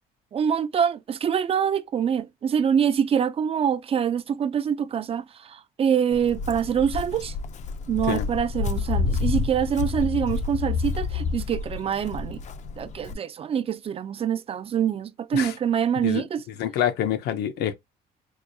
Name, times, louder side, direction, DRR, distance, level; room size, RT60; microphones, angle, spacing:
voice 1, 0.3-7.3 7.9-12.4 12.8-16.4, right 8 dB, 35° right, 0.4 m, -25 dB
Walk footsteps, 6.1-13.1, left 5 dB, 45° left, 0.5 m, -29 dB
voice 2, 16.6-17.7, left 10 dB, 75° left, 0.8 m, -26 dB
4.7 x 2.3 x 2.6 m
cardioid pair, 110°, 17 cm